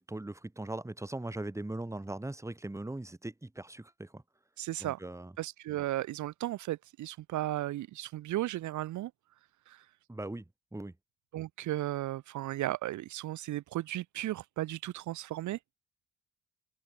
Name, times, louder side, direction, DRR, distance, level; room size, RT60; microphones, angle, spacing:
voice 1, 0.0-4.2 4.8-5.3 10.1-10.4 10.7-10.9, right 2 dB, 10° right, 2.3 m, -40 dB
voice 2, 4.6-5.0 5.4-9.1 9.7-9.8 11.3-15.6, right 15 dB, 75° right, 0.8 m, -35 dB
open air
cardioid pair, 90°, 30 cm